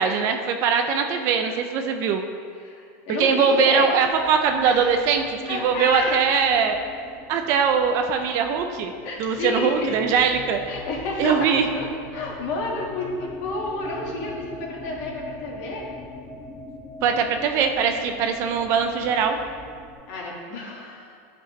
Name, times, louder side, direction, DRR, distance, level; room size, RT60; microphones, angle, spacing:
voice 1, 0.0-2.2 3.2-6.8 7.3-8.9 9.2-10.6 11.2-11.7 17.0-19.4, right 6 dB, 40° right, 5 dB, 0.5 m, -21 dB
voice 2, 2.6-3.9 4.6-4.9 5.5-6.2 9.0-9.9 10.7-11.5 11.8-11.9 12.1-15.9 20.1-21.1, left 2 dB, 45° left, -2 dB, 1.9 m, -30 dB
sound 1, 4.0-19.9, left 2 dB, 10° left, 0.9 m, -42 dB
12.0 x 6.0 x 3.2 m, 2.2 s
supercardioid pair, 170°, 8 cm